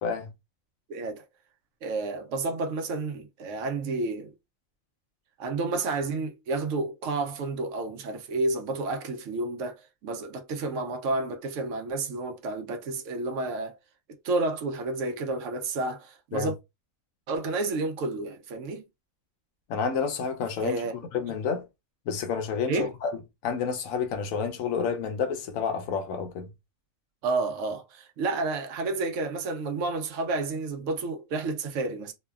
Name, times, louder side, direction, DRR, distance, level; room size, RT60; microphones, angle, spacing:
voice 1, 0.9-1.2 1.8-4.3 5.4-13.8 14.2-16.5 17.3-18.8 20.6-20.9 22.7-22.9 27.2-32.1, right 3 dB, 70° right, 0.9 m, -30 dB
voice 2, 19.7-21.7 22.1-23.1 23.4-26.5, left 6 dB, 80° left, 1.0 m, -29 dB
3.1 x 2.2 x 2.2 m
omnidirectional pair, 1.4 m